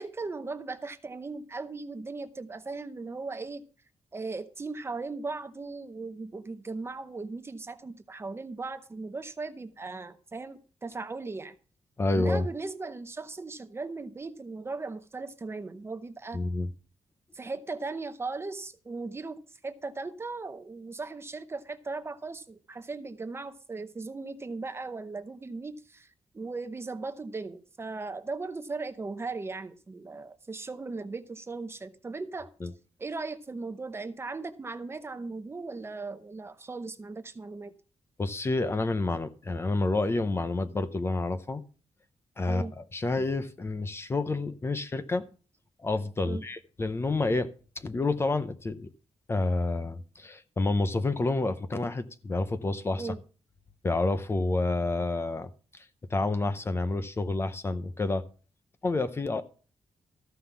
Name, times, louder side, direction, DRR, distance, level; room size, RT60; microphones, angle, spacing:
voice 1, 0.0-3.6 4.1-11.5 12.1-16.4 17.3-19.4 19.6-32.5 33.0-37.7 42.5-42.7 46.2-46.4 53.0-53.2, right 3 dB, 20° right, 10 dB, 0.7 m, -38 dB
voice 2, 12.0-12.5 16.3-16.7 32.6-32.7 38.2-41.6 42.4-45.2 45.8-47.5 47.8-48.9 49.3-53.1 53.8-55.5 56.1-58.2 58.8-59.4, left 2 dB, 20° left, 12 dB, 0.7 m, -29 dB
14.0 x 5.7 x 6.9 m, 0.38 s
wide cardioid pair, 175°, 11 cm